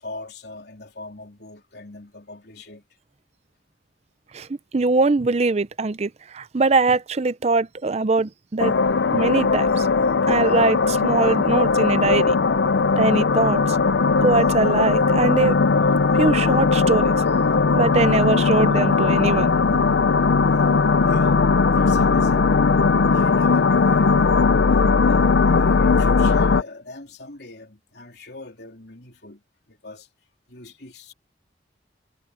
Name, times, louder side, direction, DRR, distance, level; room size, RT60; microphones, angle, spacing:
voice 1, 0.0-2.8 20.5-20.7 21.1-24.6 25.0-29.4 29.7-30.1 30.5-31.1, left 2 dB, 65° left, 3.6 m, -40 dB
voice 2, 4.7-8.7 9.1-9.9 10.3-12.4 13.0-13.8 14.2-15.6 16.1-17.1 17.7-19.9, right 3 dB, 35° right, 0.5 m, -22 dB
sound 1, 8.6-26.6, left 4 dB, 90° left, 0.6 m, -18 dB
head